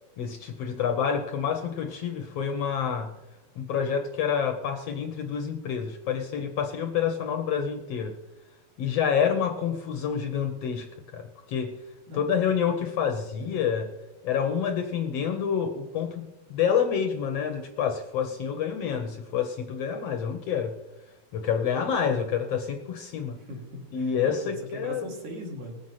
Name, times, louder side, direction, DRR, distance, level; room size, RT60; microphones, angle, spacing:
voice 1, 0.2-3.1 3.6-8.2 8.8-11.8 12.1-13.9 14.2-20.7 21.3-23.4 23.9-25.1, left 7 dB, 70° left, 7 dB, 1.6 m, -28 dB
voice 2, 12.1-12.5 13.5-13.6 23.2-25.8, equal, 65° right, 0 dB, 3.8 m, -40 dB
19.0 x 7.8 x 5.7 m, 1.1 s
omnidirectional pair, 3.5 m